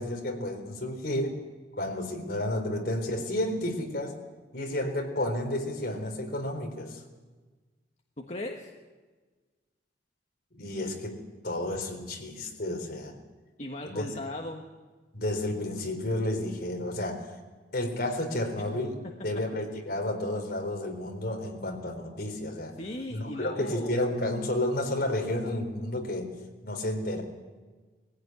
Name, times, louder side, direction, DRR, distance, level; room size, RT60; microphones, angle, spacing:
voice 1, 0.0-1.4 1.8-4.2 4.5-7.0 10.6-13.2 13.8-14.1 15.1-17.3 17.7-22.8 23.1-26.3 26.6-27.2, left 1 dB, 60° left, 3 dB, 4.2 m, -31 dB
voice 2, 8.2-8.7 13.6-14.7 18.6-18.7 22.8-24.0, left 1 dB, 40° left, 1 dB, 1.6 m, -37 dB
22.0 x 16.5 x 9.5 m, 1.3 s
head